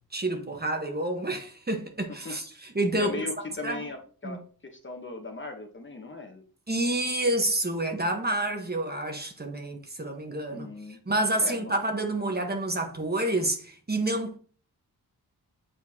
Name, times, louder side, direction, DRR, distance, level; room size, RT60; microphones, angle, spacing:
voice 1, 0.1-3.1 3.6-3.8 4.2-4.4 6.7-10.7 11.1-14.4, right 1 dB, 25° right, 1.2 m, -28 dB
voice 2, 2.9-4.4 4.7-6.4 10.5-11.0 11.4-11.7, left 3 dB, 30° left, 1.1 m, -38 dB
7.7 x 4.4 x 2.8 m
wide cardioid pair, 120°, 39 cm